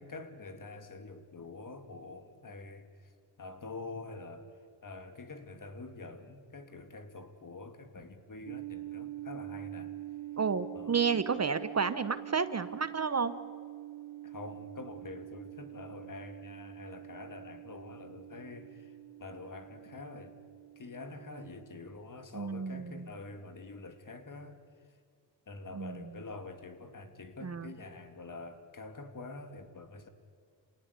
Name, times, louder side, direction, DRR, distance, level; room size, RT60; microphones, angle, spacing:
voice 1, 0.0-3.1 3.4-4.5 4.8-9.9 10.7-11.0 14.2-18.9 19.2-20.4 20.8-24.6 25.5-30.1, left 3 dB, 40° left, 8 dB, 2.7 m, -46 dB
sound 1, 8.5-22.0, right 15 dB, 70° right, 1.1 m, -45 dB
voice 2, 10.4-13.3 22.3-23.1 25.7-26.1 27.4-27.7, right 5 dB, 35° right, 13 dB, 1.0 m, -31 dB
27.5 x 18.5 x 8.4 m, 2.1 s
cardioid pair, 80°, 47 cm